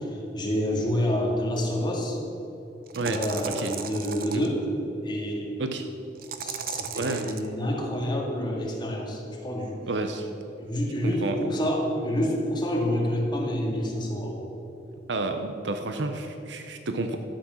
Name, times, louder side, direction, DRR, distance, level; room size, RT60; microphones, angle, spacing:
voice 1, 0.3-2.2 3.1-4.6 5.0-5.5 6.4-9.8 10.6-14.5, equal, 25° left, -1 dB, 2.0 m, -28 dB
sound 1, 1.6-1.7 2.9-4.5 6.2-7.5, right 7 dB, 55° right, 0.7 m, -36 dB
voice 2, 7.0-7.3 9.9-10.3 11.0-11.4 15.1-17.2, right 2 dB, 85° right, 6 dB, 0.8 m, -30 dB
12.0 x 8.7 x 6.2 m, 2.9 s
head